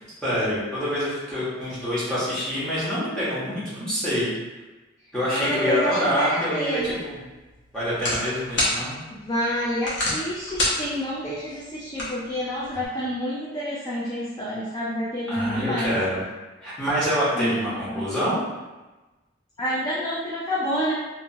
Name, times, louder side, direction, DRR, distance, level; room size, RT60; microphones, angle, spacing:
voice 1, 0.2-4.3 5.1-7.2 7.7-8.9 15.3-16.2 16.6-18.4, equal, 5° left, -11 dB, 1.0 m, -26 dB
voice 2, 5.3-7.0 9.2-16.0 17.3-18.0 19.6-20.9, equal, 20° left, -7 dB, 0.4 m, -28 dB
sound 1, 6.8-12.9, left 1 dB, 70° left, 0.9 m, -31 dB
2.9 x 2.3 x 2.7 m, 1.2 s
head